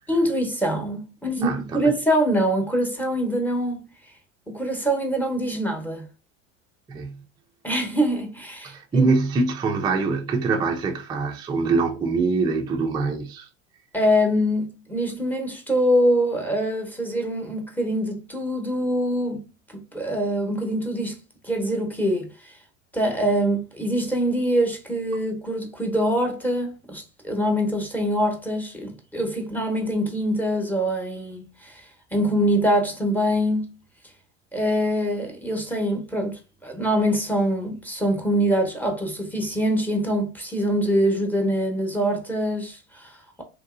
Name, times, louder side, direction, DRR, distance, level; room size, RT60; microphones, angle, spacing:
voice 1, 0.1-3.8 4.5-6.1 7.6-9.1 13.9-19.5 19.9-21.2 21.4-22.5 22.9-31.8 32.1-33.8 34.5-43.4, equal, 5° left, 0.8 m, -24 dB
voice 2, 1.4-1.9 6.9-7.2 8.6-13.5, right 4 dB, 10° right, 0.3 m, -24 dB
3.0 x 2.6 x 2.4 m
hypercardioid pair, 90°, 38 cm